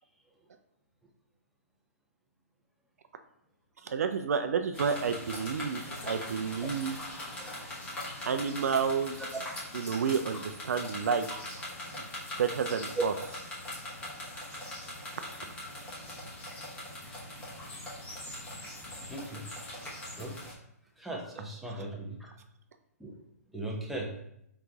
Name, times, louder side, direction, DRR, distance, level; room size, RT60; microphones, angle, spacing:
voice 1, 3.8-7.0 8.2-9.2 9.7-11.3 11.9-12.1 12.4-13.1 14.3-14.6 15.2-15.5 21.7-21.9, right 6 dB, 65° right, 7 dB, 0.4 m, -30 dB
sound 1, 4.7-20.5, left 1 dB, 15° left, 1.0 m, -41 dB
voice 2, 19.0-19.5 19.8-20.3 21.0-22.3 23.0-23.2 23.5-24.1, right 1 dB, ahead, -2 dB, 0.6 m, -39 dB
4.4 x 3.9 x 2.3 m, 0.76 s
hypercardioid pair, 130°, 9 cm